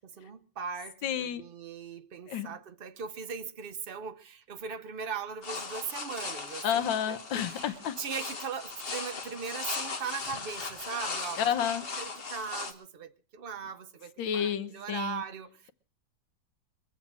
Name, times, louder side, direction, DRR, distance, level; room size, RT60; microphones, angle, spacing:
voice 1, 0.0-11.7 12.0-15.7, right 6 dB, 65° right, 0.5 m, -39 dB
voice 2, 1.0-1.4 2.3-2.5 6.6-8.0 11.4-11.8 14.2-15.2, left 9 dB, 85° left, 1.6 m, -30 dB
sound 1, 5.4-12.7, left 4 dB, 35° left, 1.3 m, -38 dB
22.5 x 7.6 x 6.1 m
omnidirectional pair, 2.0 m